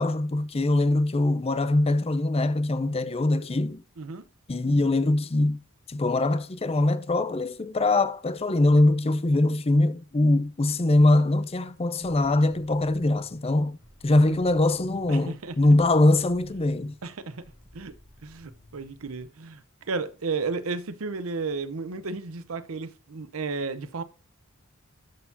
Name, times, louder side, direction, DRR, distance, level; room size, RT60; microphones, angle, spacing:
voice 1, 0.0-3.8 4.5-5.6 5.9-13.8 14.0-16.9, left 2 dB, 30° left, 0.5 m, -22 dB
sound 1, 12.0-19.3, left 1 dB, 85° left, 2.7 m, -54 dB
voice 2, 15.1-15.6 17.0-17.5 17.7-18.0 18.2-24.0, right 4 dB, 75° right, 0.7 m, -33 dB
12.5 x 4.5 x 2.6 m
head